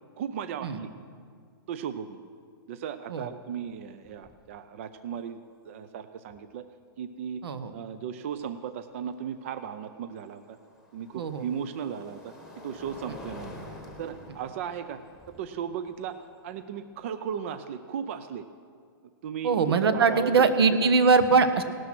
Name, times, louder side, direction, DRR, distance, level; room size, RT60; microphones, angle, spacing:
voice 1, 0.2-0.9 1.7-2.2 2.7-6.7 7.0-7.4 7.7-10.6 10.9-12.3 12.6-13.6 14.0-15.0 15.3-18.5 19.2-20.5 20.8-20.9, right 8 dB, 35° right, 12 dB, 0.5 m, -36 dB
sound 1, 3.6-3.7 4.1-4.5 6.3-6.4 9.4-17.5, left 1 dB, 5° right, 1.2 m, -48 dB
voice 2, 19.4-21.6, right 5 dB, 80° right, 11 dB, 1.2 m, -22 dB
17.5 x 12.5 x 6.0 m, 2.1 s
hypercardioid pair, 170°, 13 cm